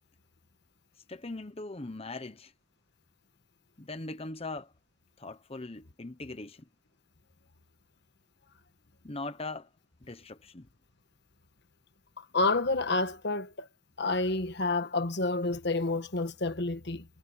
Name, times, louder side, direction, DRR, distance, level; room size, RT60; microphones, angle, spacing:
voice 1, 1.1-2.5 3.8-4.7 5.2-6.6 9.0-9.7 10.0-10.7, left 2 dB, 30° left, 1.0 m, -40 dB
voice 2, 12.2-13.7 14.0-17.1, left 3 dB, 55° left, 1.6 m, -29 dB
head